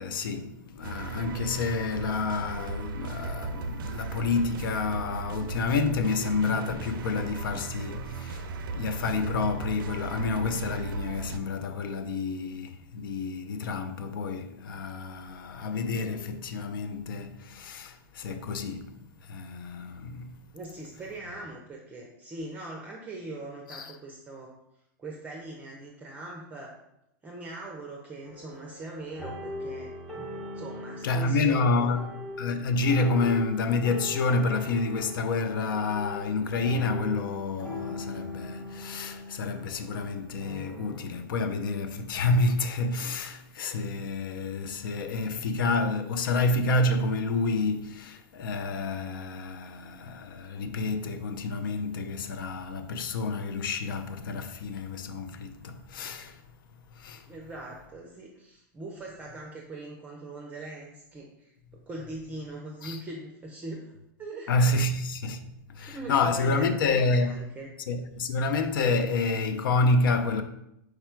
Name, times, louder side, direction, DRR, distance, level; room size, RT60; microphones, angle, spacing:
voice 1, 0.0-20.4 23.7-23.9 31.0-56.4 56.9-57.3 62.8-63.0 64.5-67.4 67.9-70.4, left 3 dB, 80° left, 0.5 m, -29 dB
sound 1, 0.8-11.4, right 4 dB, 90° right, 0.4 m, -36 dB
voice 2, 20.5-24.5 25.0-26.8 27.2-29.9 30.5-32.0 57.3-61.5 61.9-63.9 64.2-64.5 65.8-67.7, right 2 dB, 15° right, 0.5 m, -41 dB
sound 2, 28.3-41.1, left 2 dB, 5° left, 1.1 m, -40 dB
4.7 x 2.2 x 4.4 m
supercardioid pair, 140°, 11 cm